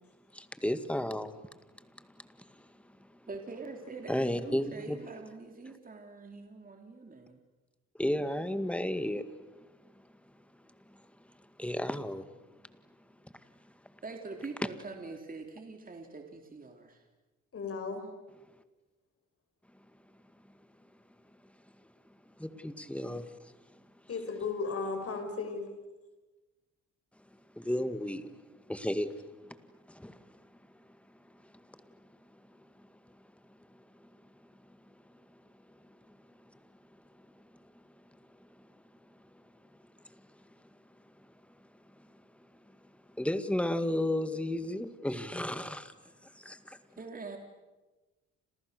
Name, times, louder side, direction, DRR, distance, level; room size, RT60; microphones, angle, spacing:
voice 1, 0.3-1.4 2.0-2.1 2.4-2.7 4.1-5.0 8.0-9.3 11.6-12.3 22.4-23.3 27.6-28.3 28.7-29.1 29.9-30.4 34.0-34.1 36.1-36.2 42.0-42.1 43.2-45.9 46.4-46.8, left 1 dB, 5° left, 11 dB, 1.9 m, -33 dB
voice 2, 3.3-7.4 14.0-17.0 47.0-47.4, right 3 dB, 30° right, 3 dB, 3.3 m, -44 dB
voice 3, 17.5-18.1 24.1-25.7, left 4 dB, 50° left, 6 dB, 6.3 m, -35 dB
29.5 x 27.5 x 6.7 m, 1.1 s
cardioid pair, 90°, 30 cm